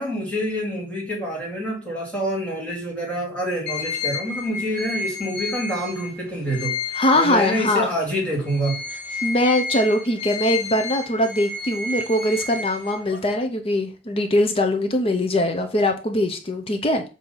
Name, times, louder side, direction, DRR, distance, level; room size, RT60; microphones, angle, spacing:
voice 1, 0.0-6.7 7.1-8.8, equal, 5° left, 2.4 m, -26 dB
sound 1, 3.7-8.0 8.4-13.3, left 4 dB, 65° left, 1.4 m, -31 dB
voice 2, 6.9-7.9 9.2-17.0, left 1 dB, 30° left, 0.6 m, -22 dB
7.9 x 2.8 x 5.4 m
head